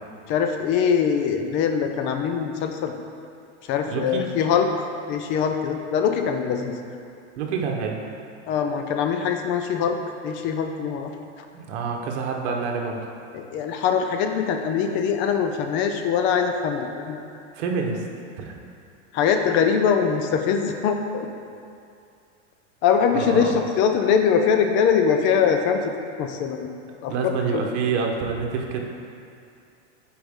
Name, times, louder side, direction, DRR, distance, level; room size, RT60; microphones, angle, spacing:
voice 1, 0.3-2.9 3.7-6.7 8.5-10.0 10.2-11.1 13.3-17.2 19.1-21.3 22.8-25.8 26.2-26.7 27.0-27.6, left 7 dB, 35° left, 5 dB, 0.4 m, -22 dB
voice 2, 3.8-4.3 7.4-8.0 11.5-13.0 17.5-18.0 18.4-18.6 23.1-23.6 27.1-28.8, right 5 dB, 65° right, 1 dB, 1.1 m, -27 dB
8.9 x 4.7 x 3.6 m, 2.4 s
supercardioid pair, 140°, 36 cm